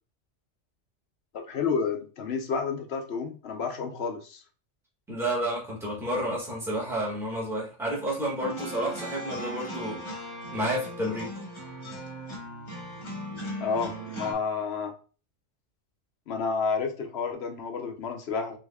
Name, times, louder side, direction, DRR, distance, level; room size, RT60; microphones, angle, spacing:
voice 1, 1.3-4.4 13.6-14.9 16.3-18.6, left 5 dB, 60° left, 4 dB, 1.0 m, -30 dB
voice 2, 5.1-10.0 10.5-11.3, right 1 dB, ahead, -5 dB, 1.6 m, -30 dB
sound 1, 8.4-14.3, right 1 dB, 25° left, 1.2 m, -38 dB
5.0 x 3.9 x 2.3 m, 0.36 s
omnidirectional pair, 1.3 m